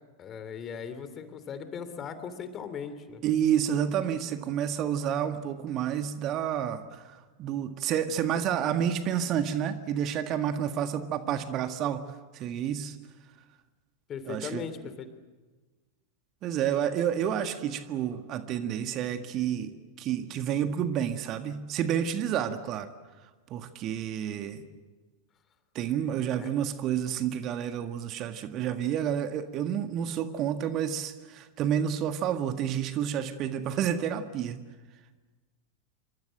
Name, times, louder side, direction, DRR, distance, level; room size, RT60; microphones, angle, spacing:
voice 1, 0.2-3.2 14.1-15.1 26.4-26.5, left 6 dB, 30° left, 11 dB, 3.0 m, -38 dB
voice 2, 3.2-12.9 14.3-14.6 16.4-22.9 23.5-24.6 25.7-34.6, right 9 dB, 35° right, 8 dB, 1.7 m, -30 dB
28.0 x 25.0 x 7.7 m, 1.3 s
figure-of-eight pair, 90°, 0 cm